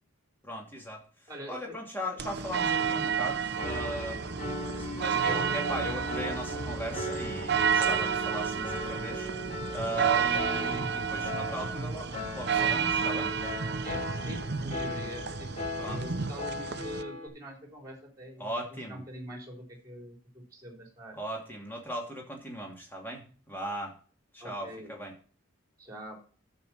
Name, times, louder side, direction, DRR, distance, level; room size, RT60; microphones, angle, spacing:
voice 1, 0.4-1.0 1.5-4.4 4.8-9.3 9.7-13.3 15.8-16.0 18.4-19.0 21.1-23.9 24.3-25.1, equal, 10° left, -1 dB, 2.9 m, -38 dB
voice 2, 1.3-1.8 2.1-2.2 13.8-15.5 15.8-18.5 18.9-21.2 24.4-25.0 25.8-26.2, equal, 15° right, 1 dB, 3.8 m, -44 dB
sound 1, 2.2-17.0, right 6 dB, 50° right, 0.6 m, -31 dB
Piano, 3.6-17.3, left 1 dB, 30° left, 2.4 m, -38 dB
12.5 x 7.3 x 4.3 m, 0.40 s
head